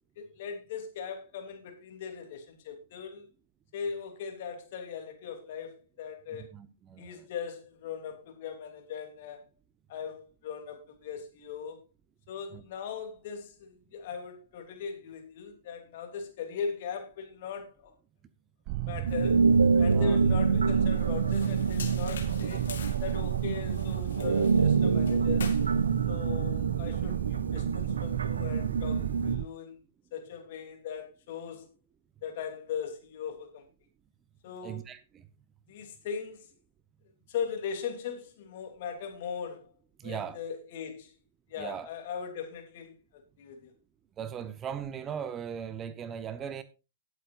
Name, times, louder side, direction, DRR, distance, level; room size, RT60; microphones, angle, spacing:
voice 1, 0.2-3.3 3.7-6.5 7.0-9.5 9.9-11.8 12.3-17.9 18.9-19.4 19.8-22.7 23.0-25.6 26.1-29.8 30.1-31.7 32.2-33.6 34.4-34.9 35.7-36.5 37.3-39.7 40.0-41.1 41.5-43.7, left 6 dB, 55° left, 3.0 m, -39 dB
voice 2, 6.3-7.3 12.5-12.6 19.9-20.2 34.6-35.3 40.0-40.4 41.6-41.9 44.2-46.6, right 8 dB, 25° right, 0.9 m, -38 dB
sound 1, 18.7-29.4, right 17 dB, 40° right, 0.5 m, -33 dB
sound 2, 19.1-29.4, right 4 dB, 85° right, 0.6 m, -27 dB
sound 3, 21.0-26.0, left 7 dB, 70° left, 2.2 m, -46 dB
19.0 x 8.1 x 2.5 m
hypercardioid pair, 120°, 0 cm